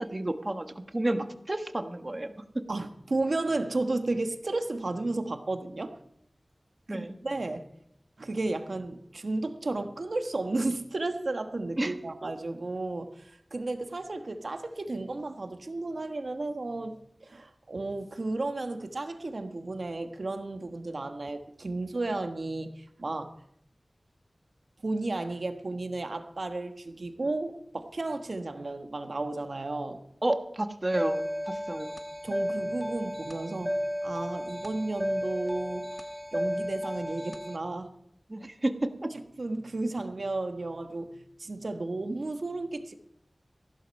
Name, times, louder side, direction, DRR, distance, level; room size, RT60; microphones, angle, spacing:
voice 1, 0.0-2.6 6.9-7.2 11.8-11.9 12.2-12.3 30.2-32.0 38.3-39.1, right 1 dB, 35° right, 8 dB, 1.3 m, -31 dB
voice 2, 2.7-6.0 6.9-7.6 8.2-23.4 24.8-30.0 32.2-33.8 34.0-36.0 36.3-37.9 39.4-43.0, right 2 dB, 75° right, 8 dB, 1.3 m, -33 dB
sound 1, 30.9-37.6, equal, 5° right, 1.1 m, -33 dB
15.0 x 12.0 x 5.4 m, 0.74 s
wide cardioid pair, 60°, 0 cm